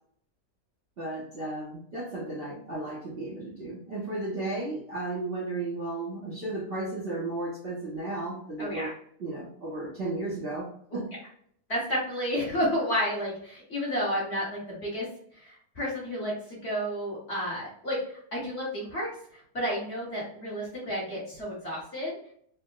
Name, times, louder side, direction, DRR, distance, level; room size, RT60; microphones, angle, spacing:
voice 1, 1.0-8.9 9.2-11.1, right 2 dB, 45° right, -7 dB, 0.8 m, -34 dB
voice 2, 8.6-8.9 10.9-11.0 11.7-15.1 15.4-22.2, equal, 45° left, -6 dB, 1.3 m, -31 dB
4.5 x 2.1 x 2.3 m, 0.65 s
omnidirectional pair, 1.8 m